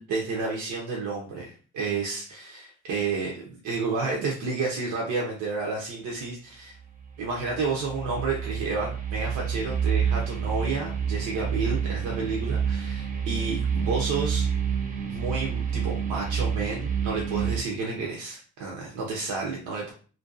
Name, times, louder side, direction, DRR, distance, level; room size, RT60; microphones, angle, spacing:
voice 1, 0.0-6.8 7.2-14.5 15.0-19.9, right 4 dB, 75° right, -2 dB, 0.6 m, -31 dB
sound 1, 6.9-17.6, right 7 dB, 30° right, 0.6 m, -28 dB
2.5 x 2.2 x 2.4 m, 0.40 s
cardioid pair, 90°, 30 cm